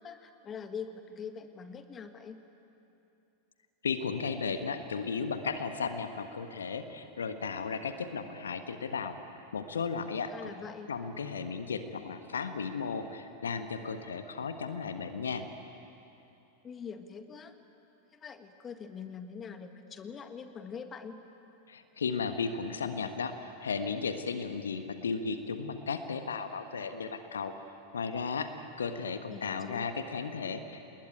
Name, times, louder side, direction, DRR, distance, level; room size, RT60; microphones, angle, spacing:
voice 1, 0.0-2.4 10.3-10.9 16.6-17.5 18.1-21.1 29.3-29.9, left 6 dB, 25° left, 8 dB, 1.7 m, -43 dB
voice 2, 3.8-9.2 9.5-10.5 10.9-15.4 21.7-27.5 27.9-30.8, left 5 dB, 70° left, 8 dB, 1.4 m, -35 dB
29.5 x 20.5 x 9.2 m, 2.9 s
figure-of-eight pair, 90°, 0 cm